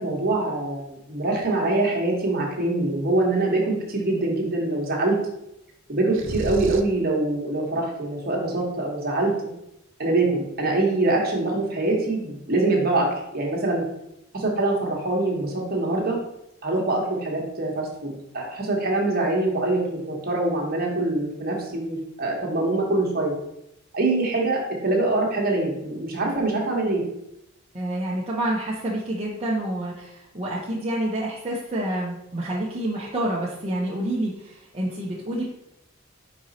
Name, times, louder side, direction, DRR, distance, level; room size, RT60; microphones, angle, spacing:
voice 1, 0.0-5.2 5.9-9.3 10.0-13.8 14.3-16.2 16.6-23.3 23.9-27.0, right 2 dB, 45° right, -1 dB, 1.4 m, -24 dB
sound 1, 6.1-7.0, right 2 dB, 60° right, 0.5 m, -31 dB
voice 2, 27.7-35.4, right 1 dB, 30° right, -5 dB, 0.8 m, -28 dB
5.0 x 4.6 x 4.2 m, 0.82 s
head